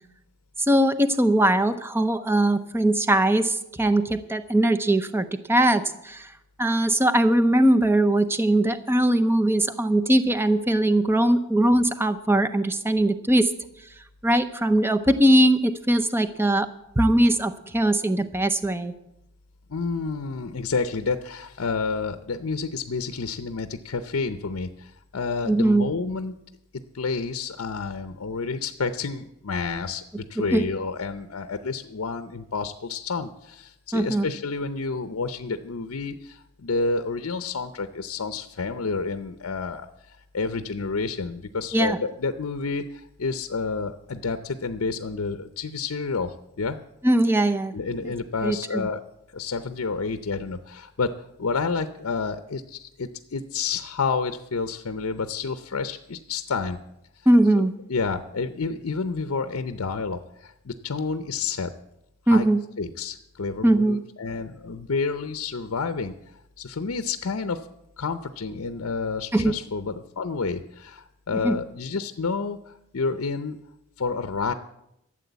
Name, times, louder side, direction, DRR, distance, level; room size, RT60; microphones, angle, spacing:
voice 1, 0.6-6.3 6.6-13.5 14.2-16.7 17.0-18.9 25.4-25.9 30.4-30.7 33.9-34.3 41.7-42.0 47.0-47.7 48.0-48.1 48.4-48.9 57.3-57.7 62.3-62.6 63.6-64.0 69.3-69.5 71.4-71.6, right 1 dB, 10° right, 11 dB, 0.6 m, -21 dB
voice 2, 19.7-26.4 26.9-46.8 47.7-49.0 49.3-51.1 51.4-56.8 57.2-57.3 57.6-61.7 62.3-62.5 62.8-67.7 68.0-73.6 74.0-74.5, left 4 dB, 70° left, 10 dB, 0.6 m, -29 dB
13.5 x 7.6 x 8.0 m, 0.85 s
head